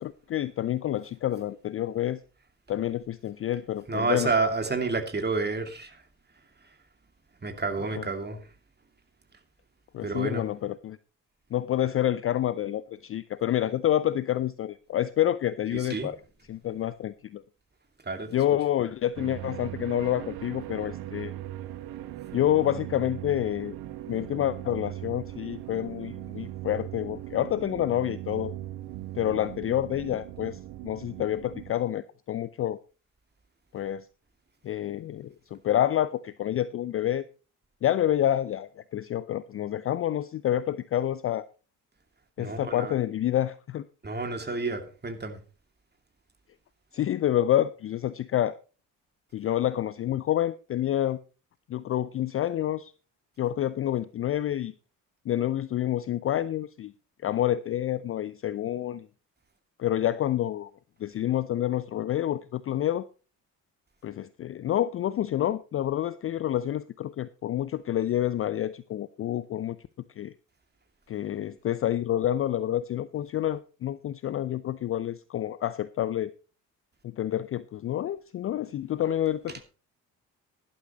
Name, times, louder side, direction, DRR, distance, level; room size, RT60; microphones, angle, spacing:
voice 1, 0.0-2.2 2.7-4.3 8.0-8.1 9.9-11.0 11.5-16.2 16.5-17.4 18.3-21.3 22.3-23.7 24.1-28.5 29.1-32.8 33.7-34.1 34.6-37.2 37.8-41.4 42.4-43.9 46.9-48.5 49.3-51.2 51.7-52.9 53.4-54.7 55.3-56.9 57.2-59.1 59.8-60.7 61.0-63.0 64.0-69.8 70.2-70.3 71.1-76.3 77.0-79.6, left 12 dB, 30° left, 0.5 m, -28 dB
voice 2, 3.9-6.0 7.4-8.4 10.0-10.4 15.7-16.1 18.0-18.3 42.4-42.9 44.0-45.4, right 3 dB, 20° right, 2.6 m, -29 dB
sound 1, 19.2-31.7, right 14 dB, 50° right, 1.0 m, -39 dB
16.5 x 11.5 x 3.1 m
figure-of-eight pair, 45°, 47 cm